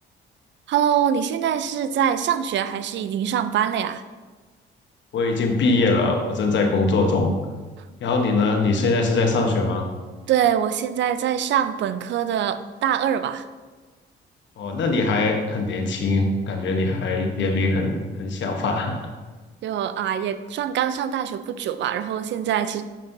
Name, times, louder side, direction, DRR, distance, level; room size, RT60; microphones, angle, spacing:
voice 1, 0.7-4.0 8.3-8.4 10.3-13.4 19.6-22.8, right 9 dB, 70° right, 12 dB, 0.4 m, -24 dB
voice 2, 5.1-7.3 8.0-9.9 14.6-18.9, left 3 dB, 70° left, 3 dB, 1.0 m, -22 dB
7.3 x 5.4 x 2.7 m, 1.3 s
cardioid pair, 90°, 20 cm